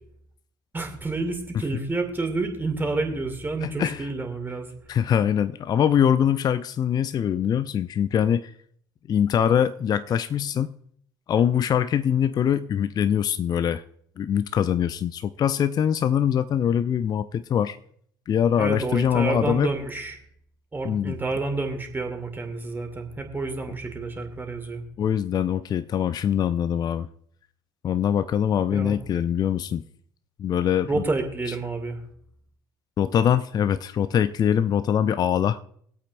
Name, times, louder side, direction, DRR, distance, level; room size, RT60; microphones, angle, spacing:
voice 1, 0.7-4.7 18.6-20.2 20.7-24.8 28.7-29.0 30.9-32.0, right 3 dB, 20° right, 2.7 m, -29 dB
voice 2, 3.6-4.1 4.9-8.5 9.1-10.7 11.3-13.8 14.2-17.8 18.3-19.7 20.8-21.1 25.0-27.1 27.8-29.8 30.4-31.0 33.0-35.6, left 9 dB, 40° left, 0.5 m, -23 dB
24.5 x 8.5 x 2.6 m
figure-of-eight pair, 60°, 11 cm